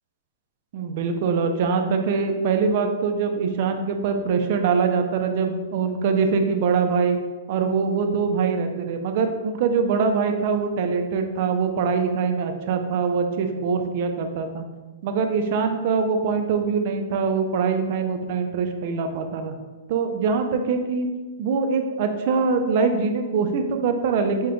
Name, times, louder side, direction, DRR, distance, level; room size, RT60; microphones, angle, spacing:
voice 1, 0.7-7.2 7.5-14.6 15.0-19.5 19.9-21.1 21.4-24.5, right 5 dB, 45° right, 5 dB, 0.4 m, -23 dB
5.3 x 2.2 x 3.7 m, 1.3 s
hypercardioid pair, 165°, 0 cm